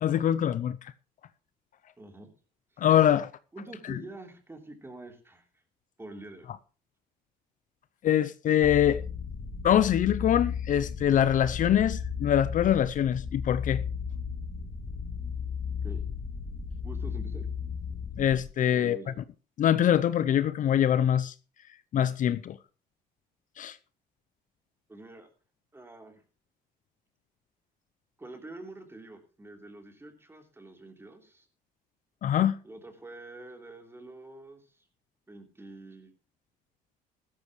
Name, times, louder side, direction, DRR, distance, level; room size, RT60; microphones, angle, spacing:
voice 1, 0.0-0.8 2.8-3.3 3.9-4.0 8.0-9.0 9.6-13.8 18.2-19.0 19.6-21.3 21.9-22.6 23.6-23.8 32.2-32.5, left 10 dB, 50° left, 0.6 m, -24 dB
voice 2, 2.0-2.3 3.5-5.5 6.0-6.5 15.8-16.0 16.8-17.5 18.7-19.2 24.9-25.3 25.7-26.2 28.2-31.5 32.6-34.9 35.3-36.1, right 2 dB, 15° right, 3.3 m, -46 dB
sound 1, 8.6-18.4, left 6 dB, 30° left, 3.2 m, -35 dB
15.0 x 13.0 x 3.1 m
cardioid pair, 110°, 17 cm